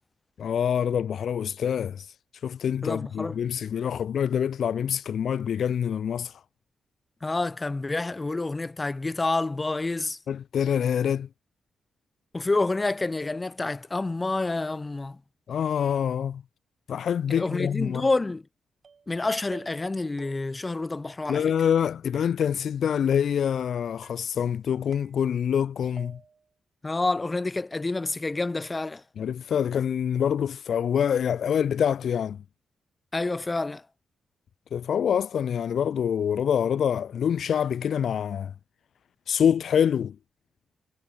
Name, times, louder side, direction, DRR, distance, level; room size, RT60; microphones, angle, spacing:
voice 1, 0.4-2.1 2.4-6.3 10.3-11.3 15.5-16.4 16.9-18.1 21.3-26.2 29.2-32.4 34.7-38.5 39.3-40.2, left 8 dB, 70° left, 0.4 m, -26 dB
voice 2, 2.8-3.4 7.2-10.2 12.3-15.2 17.3-18.4 19.1-21.5 26.8-29.0 33.1-33.8, left 2 dB, 25° left, 0.7 m, -28 dB
sound 1, 18.8-19.2 19.5-19.9 20.2-20.7 21.3-21.9 22.1-22.8 23.1-23.6 24.0-24.5 24.9-25.6 26.0-26.5, right 5 dB, 45° right, 5.8 m, -52 dB
cardioid pair, 85°, 0 cm